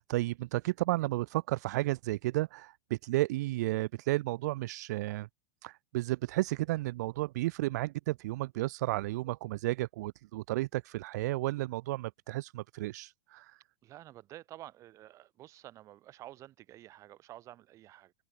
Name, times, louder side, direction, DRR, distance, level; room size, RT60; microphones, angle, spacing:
voice 1, 0.0-5.3 5.6-13.6, right 18 dB, 55° right, 0.4 m, -33 dB
voice 2, 13.8-18.1, right 14 dB, 30° right, 2.0 m, -50 dB
supercardioid pair, 145°, 11 cm